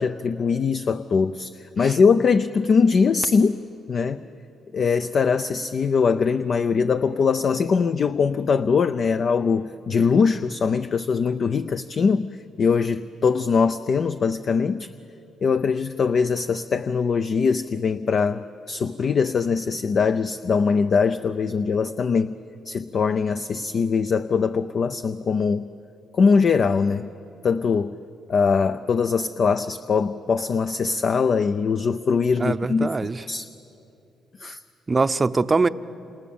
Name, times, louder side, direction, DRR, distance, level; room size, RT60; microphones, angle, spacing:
voice 1, 0.0-3.6 3.9-4.2 4.7-14.9 15.4-22.3 22.7-25.7 26.1-27.1 27.4-28.0 28.3-33.0 33.3-33.5 34.4-34.6, left 5 dB, 50° left, 10 dB, 0.6 m, -22 dB
voice 2, 32.4-33.2 34.9-35.7, right 3 dB, 25° right, 12 dB, 0.6 m, -22 dB
28.5 x 27.5 x 7.2 m, 2.9 s
cardioid pair, 90°, 0 cm